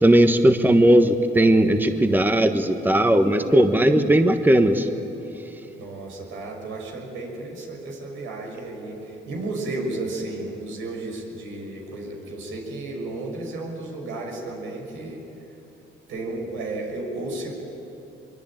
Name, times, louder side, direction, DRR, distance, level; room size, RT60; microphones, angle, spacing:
voice 1, 0.0-4.9, right 1 dB, 10° right, 7 dB, 1.4 m, -17 dB
voice 2, 5.8-15.2 16.1-17.5, right 2 dB, 90° right, 1 dB, 6.2 m, -33 dB
23.5 x 23.0 x 9.1 m, 3.0 s
cardioid pair, 90°, 20 cm